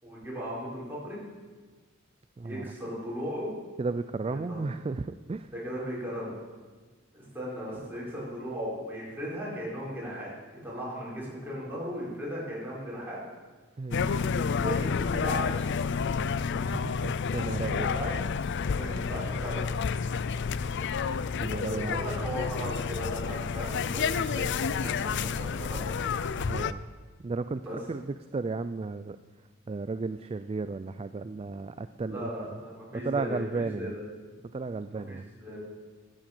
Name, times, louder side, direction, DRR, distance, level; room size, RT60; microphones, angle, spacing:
voice 1, 0.0-1.2 2.4-3.5 4.2-4.6 5.5-6.3 7.1-10.3 10.6-13.2 14.3-15.6 17.4-18.3 18.7-19.8 21.6-26.1 27.6-27.8 32.0-34.0 35.1-35.6, equal, 10° right, -7 dB, 5.7 m, -37 dB
voice 2, 2.4-2.7 3.8-5.5 13.8-14.0 16.6-17.9 21.4-22.1 26.4-26.9 27.2-27.6 27.9-29.2 29.7-32.3 33.0-33.9 34.5-35.3, right 3 dB, 25° right, 11 dB, 0.3 m, -34 dB
sound 1, 13.9-26.7, left 5 dB, 55° left, 0.4 m, -30 dB
13.0 x 9.0 x 7.7 m, 1.4 s
head